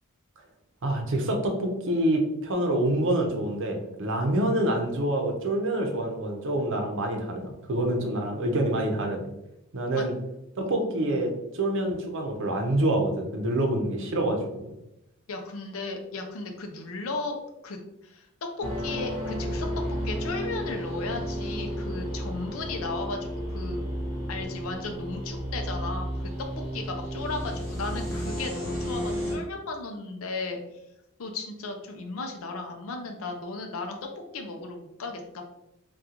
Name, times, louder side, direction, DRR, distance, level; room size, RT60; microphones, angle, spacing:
voice 1, 0.8-9.3 9.7-10.1 10.6-14.7, right 1 dB, 65° right, 3 dB, 0.7 m, -26 dB
voice 2, 15.3-17.4 17.6-23.8 24.3-26.1 26.4-30.6 31.2-35.4, left 3 dB, 70° left, 3 dB, 0.5 m, -35 dB
sound 1, 18.6-29.3, equal, 5° left, 1.1 m, -32 dB
3.7 x 2.3 x 2.8 m, 0.87 s
head